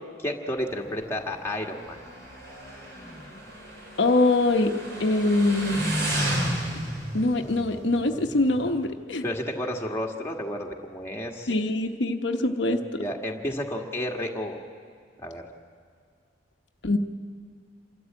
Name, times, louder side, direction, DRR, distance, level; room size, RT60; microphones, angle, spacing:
voice 1, 0.2-2.0 9.2-11.5 13.0-14.6 15.2-15.5, left 1 dB, 15° left, 0 dB, 1.7 m, -31 dB
Motorcycle, 0.6-8.9, right 1 dB, 65° right, 4.5 m, -33 dB
voice 2, 4.0-4.7 5.0-5.8 7.1-9.2 11.5-13.0 16.8-17.0, left 2 dB, 70° left, 4 dB, 1.0 m, -23 dB
27.0 x 13.0 x 8.7 m, 2.2 s
head